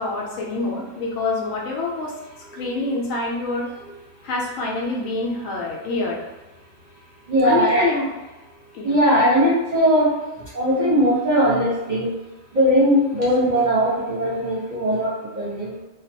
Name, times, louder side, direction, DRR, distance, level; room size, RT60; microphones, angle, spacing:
voice 1, 0.0-2.1 2.5-3.7 4.2-6.2 7.4-8.1 8.7-8.9, left 3 dB, 80° left, -2 dB, 1.0 m, -26 dB
voice 2, 3.7-4.2 6.0-6.1 7.2-7.9 8.6-12.2 12.5-15.8, equal, 45° right, -7 dB, 0.7 m, -20 dB
2.4 x 2.2 x 2.6 m, 1.1 s
omnidirectional pair, 1.3 m